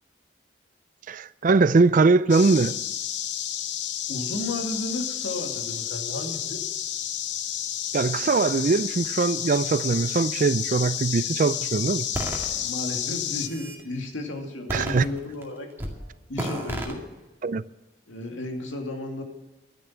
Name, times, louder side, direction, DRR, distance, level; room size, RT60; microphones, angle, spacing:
voice 1, 1.1-2.8 7.9-12.1 14.7-15.0 17.4-17.6, right 4 dB, 45° right, 0.4 m, -21 dB
sound 1, 2.3-13.5, left 10 dB, 65° left, 0.8 m, -31 dB
voice 2, 4.1-6.6 12.4-15.7 16.3-17.0 18.1-19.2, left 1 dB, 90° left, 2.4 m, -33 dB
sound 2, 12.1-12.5 13.2-13.8 14.7-15.4 15.8-16.0 16.4-16.9, right 1 dB, 10° right, 2.1 m, -31 dB
12.0 x 10.5 x 7.3 m
head